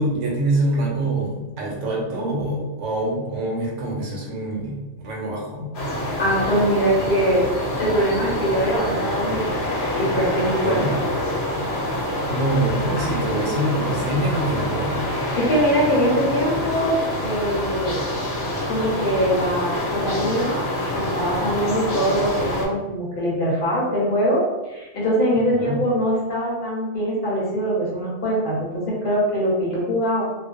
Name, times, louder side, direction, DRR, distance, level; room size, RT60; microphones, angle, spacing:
voice 1, 0.0-5.7 10.6-10.9 12.3-15.1 25.3-25.8, right 1 dB, 90° right, -3 dB, 1.1 m, -25 dB
sound 1, 5.7-22.7, left 1 dB, 75° left, 0.9 m, -26 dB
voice 2, 6.2-7.4 7.8-9.6 9.9-11.0 15.4-18.0 18.7-20.6 20.9-24.4 24.7-30.2, equal, 55° left, -5 dB, 0.9 m, -22 dB
2.4 x 2.1 x 2.4 m, 1.1 s
omnidirectional pair, 1.2 m